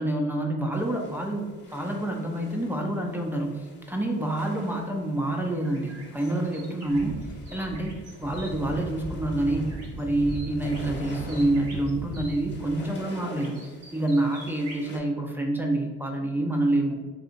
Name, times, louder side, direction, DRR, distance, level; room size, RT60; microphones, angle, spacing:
voice 1, 0.0-9.7 10.0-17.0, right 1 dB, 5° right, 1 dB, 0.4 m, -27 dB
sound 1, 0.7-15.0, left 1 dB, 35° left, 0.9 m, -47 dB
sound 2, 5.6-8.5 9.7-10.0 10.3-12.4 13.3-14.9, right 2 dB, 55° right, 0.9 m, -47 dB
sound 3, 6.8-12.9, right 2 dB, 80° right, 1.0 m, -38 dB
3.8 x 2.7 x 2.5 m, 1.3 s
cardioid pair, 90°, 30 cm